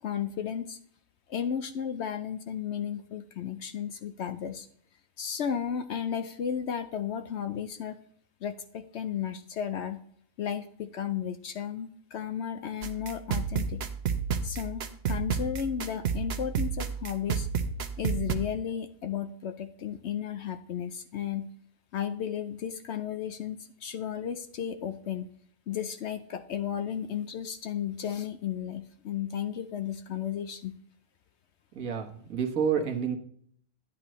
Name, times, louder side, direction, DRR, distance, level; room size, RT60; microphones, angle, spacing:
voice 1, 0.0-0.8 1.3-4.7 5.2-8.0 8.4-10.0 10.4-13.8 14.4-17.5 18.0-21.5 21.9-25.3 25.7-30.7, left 8 dB, 65° left, 9 dB, 0.7 m, -34 dB
sound 1, 12.8-18.4, right 6 dB, 55° right, 0.9 m, -31 dB
voice 2, 31.7-33.2, right 7 dB, 75° right, 4 dB, 1.6 m, -29 dB
11.5 x 8.9 x 3.0 m, 0.63 s
omnidirectional pair, 1.4 m